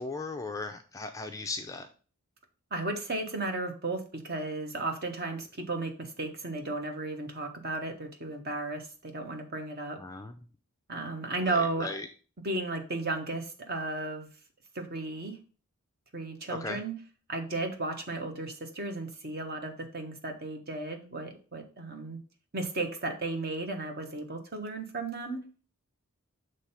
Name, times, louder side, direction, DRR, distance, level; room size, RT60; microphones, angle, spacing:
voice 1, 0.0-1.9 10.0-10.3 11.4-12.1 16.5-16.8, left 3 dB, 15° left, 6 dB, 0.4 m, -37 dB
voice 2, 2.7-10.0 10.9-11.9 12.4-14.3 14.7-15.4 16.1-17.0 17.3-22.2 22.5-25.4, right 2 dB, 45° right, 5 dB, 1.1 m, -34 dB
6.2 x 3.3 x 5.6 m, 0.37 s
head